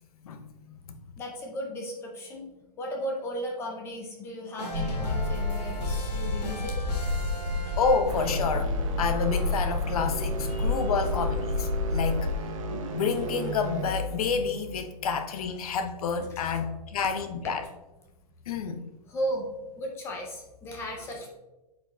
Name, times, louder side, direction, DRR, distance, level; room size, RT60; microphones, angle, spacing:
voice 1, 0.2-1.0 7.8-8.7 9.0-12.3 12.7-17.7 18.5-18.8, left 5 dB, 65° left, 7 dB, 0.8 m, -29 dB
voice 2, 1.2-2.5 2.8-6.9 7.5-7.7 17.0-17.1 17.4-17.5 19.1-19.5 19.8-21.3, equal, 10° left, 1 dB, 0.6 m, -35 dB
sound 1, 4.6-8.5, left 2 dB, 80° left, 2.3 m, -36 dB
sound 2, 4.7-12.4, left 2 dB, 80° right, 2.2 m, -30 dB
sound 3, 8.1-16.2, left 1 dB, 50° right, 0.9 m, -34 dB
8.8 x 5.2 x 2.3 m, 1.1 s
hypercardioid pair, 165°, 21 cm